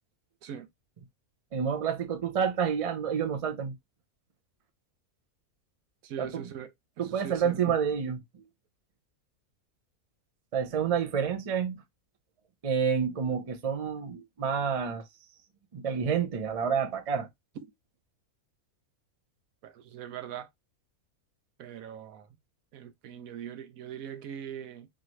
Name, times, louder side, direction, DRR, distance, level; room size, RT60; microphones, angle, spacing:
voice 1, 1.5-3.7 6.2-6.4 7.0-8.2 10.5-11.8 12.6-15.0 15.7-17.3, right 7 dB, 40° right, 0.5 m, -29 dB
voice 2, 6.0-7.7 17.6-17.7 19.6-20.5 21.6-22.3 22.7-24.9, right 9 dB, 75° right, 1.1 m, -41 dB
4.0 x 2.6 x 2.9 m
omnidirectional pair, 1.5 m